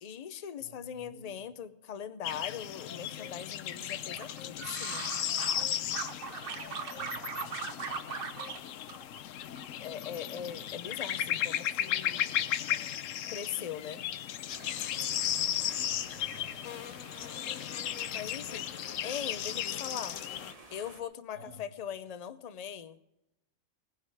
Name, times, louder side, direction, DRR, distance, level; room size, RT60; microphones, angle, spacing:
voice 1, 0.0-5.1 9.8-12.4 13.3-14.0 18.1-20.2 20.7-23.0, left 8 dB, 40° left, 12 dB, 0.6 m, -41 dB
voice 2, 0.6-1.5 7.0-8.6 15.3-16.9 21.3-21.6, left 1 dB, 80° right, -1 dB, 3.9 m, -54 dB
sound 1, 2.2-20.5, left 11 dB, 80° left, 1.0 m, -35 dB
sound 2, 4.2-5.6 5.9-8.6 8.9-9.7 10.0-10.4, right 6 dB, 50° right, 1.1 m, -39 dB
sound 3, 14.5-21.0, right 2 dB, 30° right, 1.3 m, -52 dB
18.5 x 10.0 x 4.8 m, 0.86 s
omnidirectional pair, 1.3 m